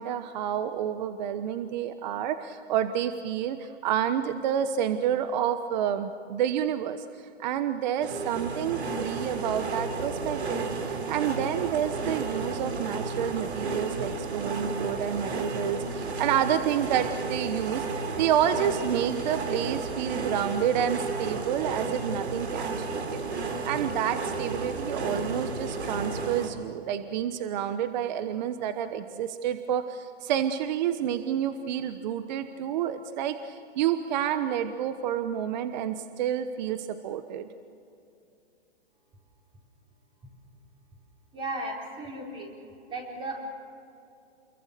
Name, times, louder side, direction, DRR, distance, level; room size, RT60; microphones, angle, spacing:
voice 1, 0.0-23.2 23.6-37.5, right 9 dB, 40° right, 10 dB, 1.1 m, -29 dB
sound 1, 8.0-26.5, right 4 dB, 80° right, 3.4 m, -32 dB
voice 2, 41.3-42.5 42.9-43.4, right 2 dB, 15° right, -1 dB, 4.7 m, -35 dB
29.0 x 22.5 x 6.8 m, 2.7 s
hypercardioid pair, 140°, 33 cm